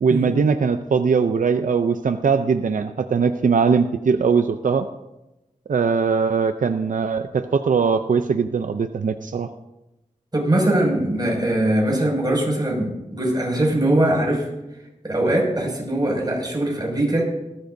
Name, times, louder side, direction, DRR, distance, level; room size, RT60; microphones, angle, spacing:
voice 1, 0.0-4.9 5.7-9.5, right 5 dB, 90° right, 8 dB, 0.6 m, -20 dB
voice 2, 10.3-14.4 15.0-17.3, right 1 dB, 30° right, -2 dB, 6.1 m, -21 dB
18.5 x 14.5 x 2.7 m, 0.96 s
wide cardioid pair, 70°, 13 cm